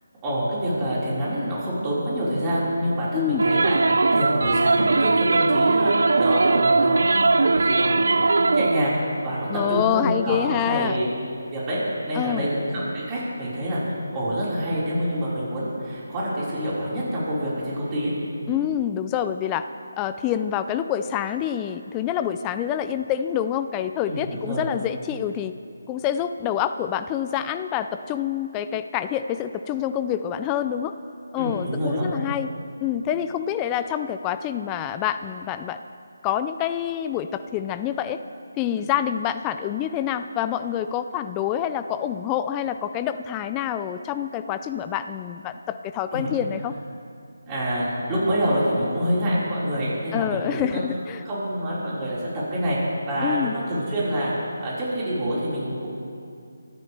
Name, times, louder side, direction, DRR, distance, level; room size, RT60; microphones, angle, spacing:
voice 1, 0.2-8.0 8.3-11.0 11.5-11.8 12.1-18.1 24.1-24.7 31.3-32.1 46.1-46.3 47.5-50.8 51.2-52.8 53.1-55.9, equal, 20° right, -9 dB, 4.8 m, -26 dB
voice 2, 3.1-3.4 9.5-11.0 12.1-12.5 18.5-19.7 20.0-25.5 25.9-30.9 31.3-32.5 32.8-35.8 36.2-38.2 38.6-46.7 50.1-51.2 53.2-53.5, left 10 dB, 15° left, 10 dB, 0.4 m, -27 dB
sound 1, 3.4-8.9, right 3 dB, 75° right, 0.5 m, -20 dB
24.5 x 13.0 x 3.4 m, 2.4 s
figure-of-eight pair, 165°, 0 cm